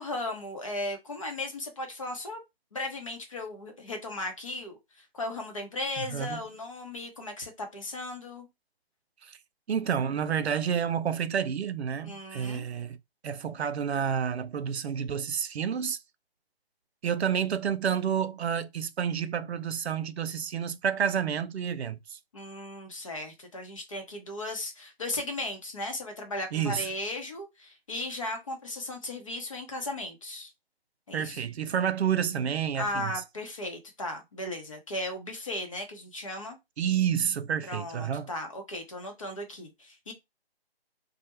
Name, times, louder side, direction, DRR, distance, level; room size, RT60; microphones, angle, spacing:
voice 1, 0.0-2.4 2.7-8.5 12.0-12.7 22.3-30.5 31.1-31.4 32.8-36.6 37.7-40.1, left 2 dB, 30° left, 0.6 m, -36 dB
voice 2, 6.0-6.4 9.2-9.4 9.7-13.0 13.2-16.0 17.0-22.2 26.5-26.9 31.1-33.1 36.8-38.3, right 8 dB, 85° right, 0.5 m, -29 dB
2.3 x 2.1 x 2.8 m
figure-of-eight pair, 160°, 32 cm